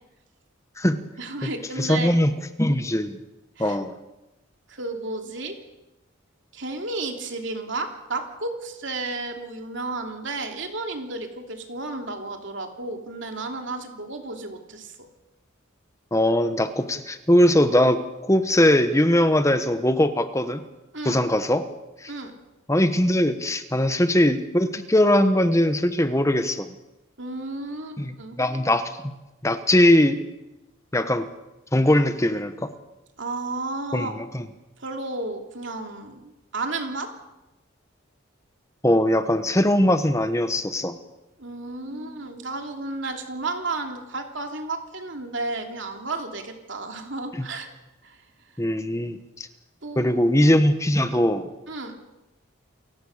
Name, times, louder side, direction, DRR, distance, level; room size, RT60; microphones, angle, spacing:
voice 1, 1.2-2.2 3.6-3.8 4.7-5.6 6.5-14.9 20.9-21.3 22.1-22.3 27.2-28.4 33.2-34.1 34.8-37.1 41.4-47.7 48.0-48.2 49.8-50.3 51.7-52.0, right 2 dB, 60° right, 4 dB, 3.0 m, -32 dB
voice 2, 1.8-2.3 2.6-3.2 3.6-3.9 16.1-20.6 21.0-21.6 22.0-22.1 22.7-26.7 28.0-28.9 29.4-30.2 30.9-31.3 31.7-32.7 33.9-34.4 38.8-41.0 41.9-42.2 48.6-49.5 50.0-51.5, left 1 dB, 15° left, 9 dB, 1.3 m, -21 dB
29.0 x 16.0 x 6.7 m, 0.98 s
head